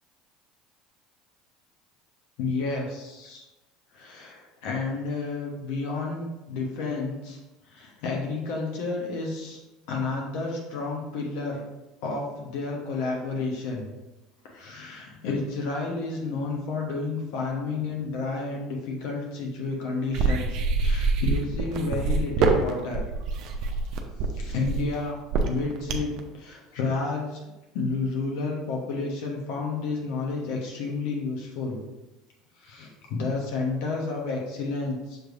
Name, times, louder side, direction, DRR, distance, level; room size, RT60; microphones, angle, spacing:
voice 1, 2.4-3.4 3.9-7.4 7.7-9.6 9.9-11.7 12.0-13.9 14.4-23.0 24.3-25.2 25.5-27.4 27.7-31.8 32.6-35.2, left 3 dB, 70° left, -1 dB, 0.8 m, -31 dB
sound 1, 20.1-26.2, right 4 dB, 60° right, 0.6 m, -25 dB
6.3 x 3.2 x 2.5 m, 1.0 s
hypercardioid pair, 75°, 0 cm